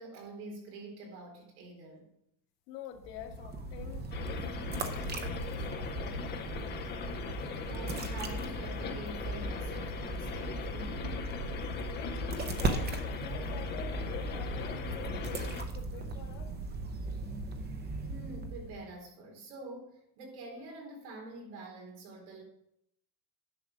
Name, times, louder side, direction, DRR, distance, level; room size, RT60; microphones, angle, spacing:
voice 1, 0.0-2.1 7.7-11.2 18.1-22.4, right 2 dB, 90° right, 0 dB, 4.2 m, -46 dB
voice 2, 2.7-6.8 11.9-16.5, left 9 dB, 80° left, 3 dB, 1.8 m, -47 dB
sound 1, 3.0-18.9, right 2 dB, 20° right, 0.7 m, -37 dB
sound 2, 4.1-15.6, left 6 dB, 20° left, 0.6 m, -41 dB
10.5 x 6.4 x 5.1 m, 0.77 s
cardioid pair, 165°, 47 cm